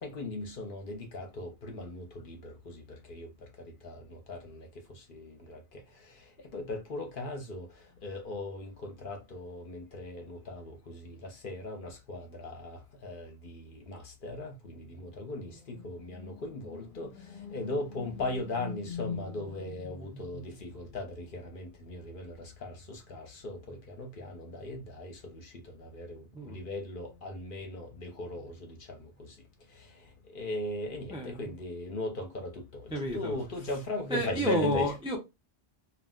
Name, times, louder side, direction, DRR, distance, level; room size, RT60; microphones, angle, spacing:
voice 1, 0.0-29.4 29.7-35.0, left 2 dB, 55° left, 0.8 m, -39 dB
voice 2, 32.9-33.3 34.1-35.2, equal, 10° right, 0.3 m, -30 dB
2.4 x 2.1 x 3.5 m
omnidirectional pair, 1.2 m